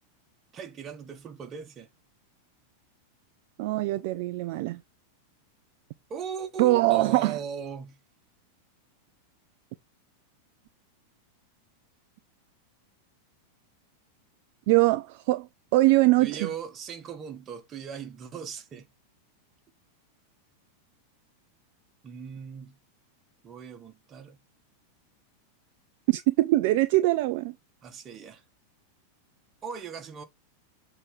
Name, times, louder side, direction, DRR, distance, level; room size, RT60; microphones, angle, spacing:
voice 1, 0.5-1.9 6.1-8.0 16.2-18.9 22.0-22.8 23.4-24.4 27.8-28.4 29.6-30.2, right 7 dB, 25° right, 1.5 m, -38 dB
voice 2, 3.6-4.8 6.6-7.4 14.7-15.5 15.7-16.5 26.1-27.5, right 18 dB, 50° right, 0.4 m, -22 dB
7.5 x 3.6 x 4.9 m
figure-of-eight pair, 90°, 0 cm